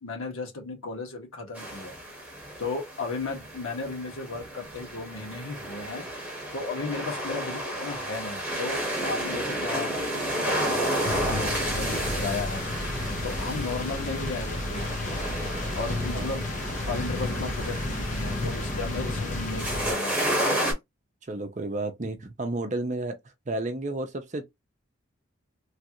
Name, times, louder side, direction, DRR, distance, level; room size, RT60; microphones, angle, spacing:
voice 1, 0.0-2.0 2.6-6.0 6.5-12.7 13.2-14.9 15.7-16.5 16.9-20.4, left 3 dB, 85° left, 1.5 m, -35 dB
sound 1, 1.6-20.7, right 1 dB, 5° right, 1.3 m, -32 dB
sound 2, 11.0-19.9, left 2 dB, 35° left, 0.7 m, -32 dB
voice 2, 21.3-23.2 23.5-24.4, right 2 dB, 35° right, 0.6 m, -31 dB
3.2 x 2.4 x 2.9 m
head